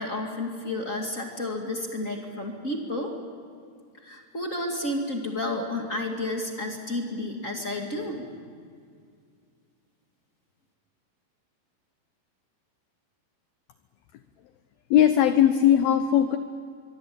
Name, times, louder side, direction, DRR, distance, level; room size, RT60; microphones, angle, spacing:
voice 1, 0.0-3.1 4.0-8.3, left 1 dB, 35° left, 1 dB, 1.3 m, -31 dB
voice 2, 14.9-16.4, left 10 dB, 85° left, 10 dB, 2.1 m, -19 dB
24.0 x 23.5 x 8.6 m, 2.2 s
omnidirectional pair, 5.4 m